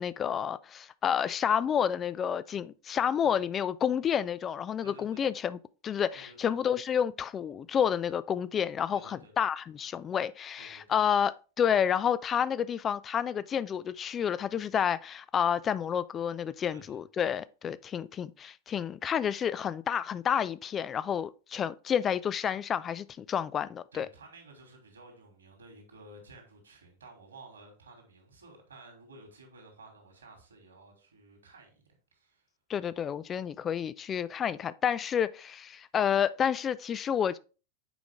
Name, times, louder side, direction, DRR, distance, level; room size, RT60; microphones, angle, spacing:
voice 1, 0.0-5.6 5.8-24.1 32.7-37.4, left 8 dB, 25° left, 0.3 m, -30 dB
voice 2, 4.8-5.3 6.1-6.6 8.9-9.3 10.6-11.0 16.7-17.0 23.9-31.8 32.1-32.5, right 2 dB, 70° right, 2.7 m, -53 dB
8.2 x 5.0 x 3.5 m
figure-of-eight pair, 90°, 0 cm